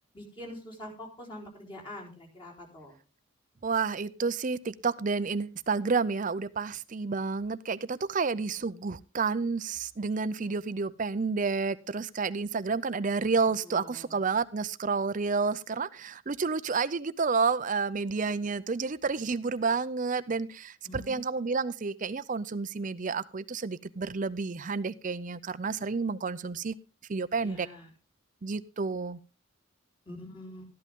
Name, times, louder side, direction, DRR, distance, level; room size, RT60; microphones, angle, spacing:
voice 1, 0.1-3.0 13.6-14.2 20.8-21.2 27.4-27.9 30.1-30.6, left 1 dB, 25° left, -2 dB, 3.9 m, -45 dB
voice 2, 3.6-26.8 27.1-27.7 28.4-29.2, right 4 dB, 40° right, 15 dB, 0.5 m, -30 dB
13.5 x 11.0 x 3.6 m, 0.31 s
head